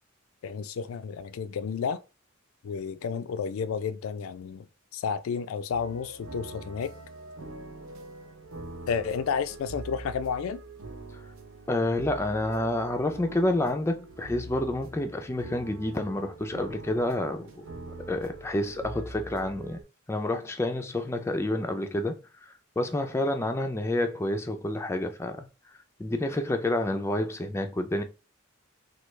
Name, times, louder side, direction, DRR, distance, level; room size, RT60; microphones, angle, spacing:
voice 1, 0.4-2.0 2.6-4.7 4.9-6.9 8.9-10.6, left 6 dB, 85° left, 0.3 m, -31 dB
sound 1, 5.7-19.8, right 2 dB, 85° right, 0.6 m, -43 dB
voice 2, 11.7-17.6 18.1-19.8 20.1-22.2 22.8-25.5 26.0-28.0, left 1 dB, 15° left, 0.3 m, -29 dB
3.2 x 2.3 x 3.1 m
head